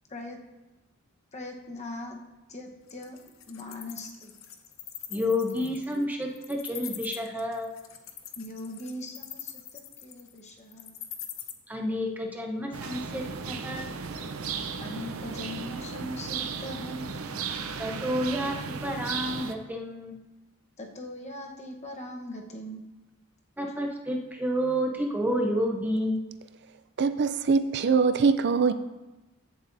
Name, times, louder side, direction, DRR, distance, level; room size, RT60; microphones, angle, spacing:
voice 1, 0.1-0.4 1.3-2.2 2.5-3.2 3.5-4.4 8.4-11.0 14.8-17.1 20.8-22.8 23.6-23.7, left 1 dB, 30° left, 1.1 m, -40 dB
Wild animals, 2.9-11.5, left 11 dB, 70° left, 0.8 m, -42 dB
voice 2, 5.1-7.7 11.7-13.9 17.8-20.1 23.6-26.2, equal, 10° right, 0.9 m, -30 dB
sound 1, 12.7-19.5, right 5 dB, 85° right, 0.7 m, -35 dB
voice 3, 27.0-28.7, right 5 dB, 50° right, 0.4 m, -23 dB
15.0 x 7.3 x 2.7 m
head